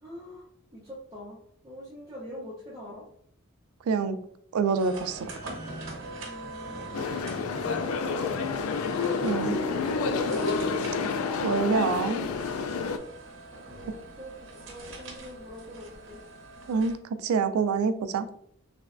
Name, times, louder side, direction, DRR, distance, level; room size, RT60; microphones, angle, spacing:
voice 1, 0.0-0.5 0.7-1.4 1.6-3.0 6.2-6.9 9.1-10.8 13.5-16.2, left 1 dB, 15° right, -8 dB, 0.6 m, -44 dB
voice 2, 3.9-4.2 4.5-5.3 9.2-9.6 11.4-12.3 16.7-18.3, right 5 dB, 90° right, 11 dB, 0.3 m, -26 dB
sound 1, 4.8-17.0, right 2 dB, 60° right, 0.8 m, -42 dB
sound 2, 6.9-13.0, left 5 dB, 80° left, 0.3 m, -29 dB
sound 3, 9.4-11.7, right 4 dB, 25° left, 0.7 m, -37 dB
3.3 x 3.0 x 2.4 m, 0.65 s
head